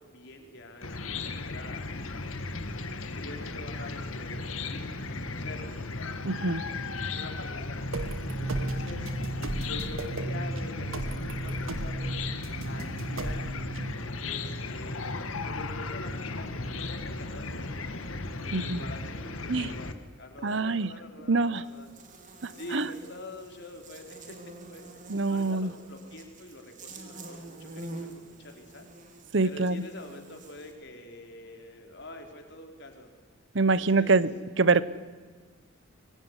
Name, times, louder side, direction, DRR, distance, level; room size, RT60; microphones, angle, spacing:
voice 1, 0.0-2.2 3.2-5.7 7.1-7.8 8.4-9.1 9.7-12.1 12.6-13.5 14.2-15.2 15.4-19.9 20.2-21.9 22.5-33.1 33.5-34.3, left 1 dB, 55° left, 3 dB, 4.4 m, -46 dB
Chicken rooster / Cricket, 0.8-19.9, left 3 dB, 80° left, 2.0 m, -36 dB
voice 2, 6.2-6.6 18.5-18.8 19.5-19.7 20.4-20.9 21.3-21.6 22.4-22.9 25.1-25.7 29.3-29.8 33.5-34.3 34.6-34.8, right 3 dB, 60° right, 17 dB, 0.9 m, -25 dB
sound 1, 7.9-13.9, right 2 dB, 80° right, 1.5 m, -35 dB
Buzz, 21.6-30.7, right 2 dB, 35° right, 3.4 m, -46 dB
24.5 x 21.5 x 9.8 m, 1.4 s
head